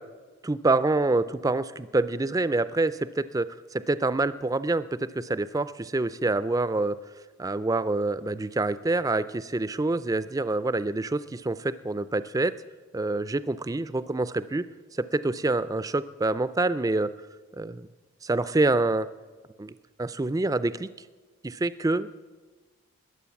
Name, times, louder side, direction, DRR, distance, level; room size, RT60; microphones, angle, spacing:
voice 1, 0.5-7.0 7.4-12.5 12.9-14.7 14.9-17.1 17.6-17.9 18.2-19.1 19.6-19.7 20.0-20.9 21.4-22.2, right 2 dB, 15° right, 15 dB, 0.3 m, -26 dB
20.5 x 7.7 x 7.1 m, 1.3 s
head